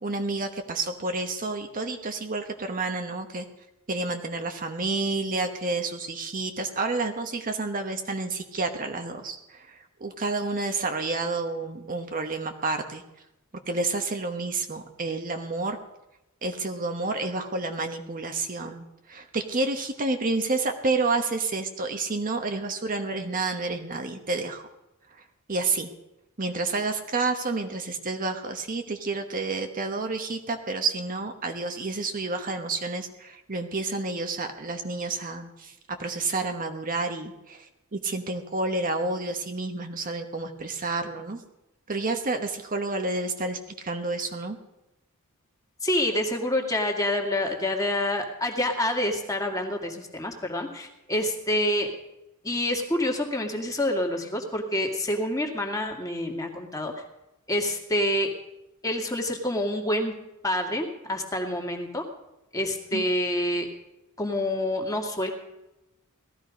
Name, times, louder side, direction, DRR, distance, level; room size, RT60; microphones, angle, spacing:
voice 1, 0.0-3.4 3.9-13.0 13.7-15.8 16.4-24.7 25.5-25.9 26.4-35.7 36.0-41.4 41.9-44.6 62.9-63.0, right 3 dB, 40° right, 5 dB, 1.1 m, -30 dB
voice 2, 45.8-51.9 52.4-56.9 57.5-58.3 58.8-60.1 60.4-62.0 62.5-63.7 64.2-65.3, left 1 dB, 15° left, 2 dB, 2.2 m, -27 dB
18.0 x 13.5 x 5.2 m, 0.93 s
head